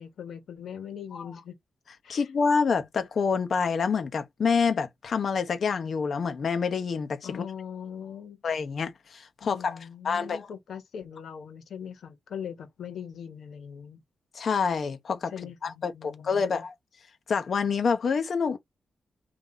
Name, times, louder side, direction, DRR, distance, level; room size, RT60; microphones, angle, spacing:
voice 1, 0.0-1.6 2.0-2.3 7.2-8.4 9.4-14.0 15.3-16.6, left 8 dB, 75° left, 1.2 m, -41 dB
voice 2, 2.1-7.4 8.4-9.8 10.0-10.5 14.3-15.3 15.6-16.7 17.3-18.6, left 5 dB, 60° left, 0.8 m, -27 dB
3.9 x 2.7 x 3.9 m
cardioid pair, 100°, 0 cm